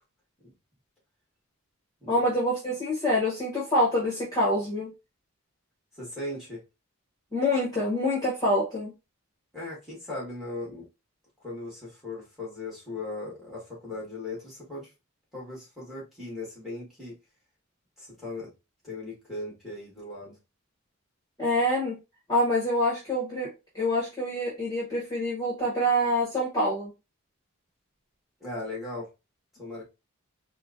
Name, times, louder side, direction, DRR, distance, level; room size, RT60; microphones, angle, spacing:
voice 1, 2.1-4.9 7.3-8.9 21.4-22.0 22.3-26.9, left 1 dB, 15° left, -5 dB, 1.2 m, -26 dB
voice 2, 6.0-6.6 9.5-10.9 11.4-14.9 15.3-17.1 18.0-18.5 18.8-20.4 28.4-29.1 29.6-29.8, left 2 dB, ahead, -4 dB, 1.5 m, -38 dB
4.3 x 2.2 x 2.5 m, 0.26 s
head